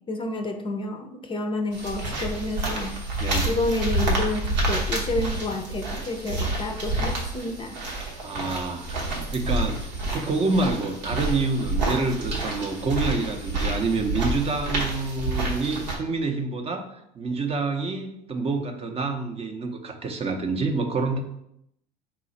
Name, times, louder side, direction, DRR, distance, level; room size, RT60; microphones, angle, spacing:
voice 1, 0.1-3.0 3.5-7.8, left 2 dB, 25° left, 5 dB, 0.5 m, -29 dB
sound 1, 1.7-16.0, right 2 dB, 85° right, 0.9 m, -28 dB
voice 2, 8.2-21.2, right 3 dB, 30° right, 5 dB, 0.6 m, -27 dB
4.0 x 2.3 x 4.0 m, 0.77 s
hypercardioid pair, 70°, 21 cm